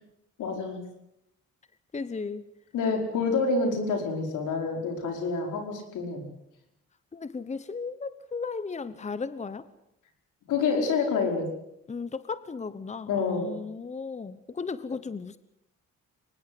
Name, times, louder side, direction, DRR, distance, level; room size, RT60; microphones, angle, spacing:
voice 1, 0.4-0.8 2.7-6.3 10.5-11.5 13.1-13.5, left 4 dB, 80° left, 4 dB, 5.2 m, -27 dB
voice 2, 1.9-2.4 7.1-9.6 11.9-15.4, left 4 dB, 25° left, 14 dB, 1.0 m, -35 dB
23.5 x 20.0 x 8.0 m, 0.80 s
cardioid pair, 90°, 30 cm